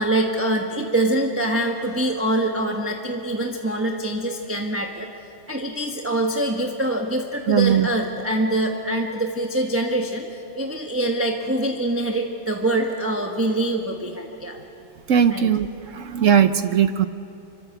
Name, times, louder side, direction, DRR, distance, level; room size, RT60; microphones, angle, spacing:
voice 1, 0.0-5.1 5.5-14.6 15.3-15.5, right 1 dB, 10° right, 1 dB, 1.2 m, -24 dB
voice 2, 7.5-7.9 15.1-15.7 15.9-17.1, right 8 dB, 55° right, 10 dB, 0.9 m, -18 dB
26.0 x 24.0 x 7.9 m, 2.8 s
omnidirectional pair, 2.1 m